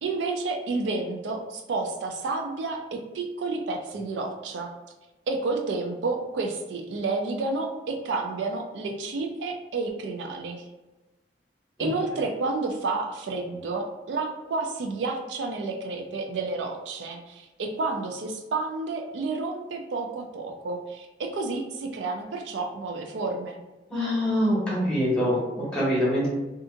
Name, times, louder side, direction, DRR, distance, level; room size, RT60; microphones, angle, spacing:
voice 1, 0.0-4.7 5.3-10.6 11.8-23.6, right 3 dB, 80° right, 3 dB, 0.4 m, -30 dB
voice 2, 23.9-26.3, equal, 5° left, -8 dB, 1.2 m, -24 dB
2.7 x 2.4 x 2.4 m, 1.1 s
head